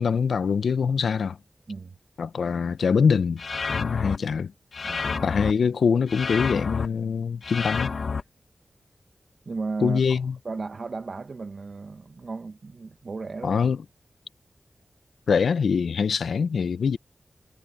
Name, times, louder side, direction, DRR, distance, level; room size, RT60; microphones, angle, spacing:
voice 1, 0.0-1.4 2.2-3.4 3.7-4.5 5.2-7.9 9.8-10.3 13.4-13.8 15.3-17.0, left 6 dB, 90° left, 0.6 m, -23 dB
sound 1, 3.4-4.2 4.7-5.5 6.1-6.9 7.4-8.2, left 4 dB, 75° left, 1.1 m, -29 dB
voice 2, 4.8-5.3 9.5-10.2 10.4-13.6, right 4 dB, 65° right, 1.0 m, -35 dB
cardioid pair, 40°, 0 cm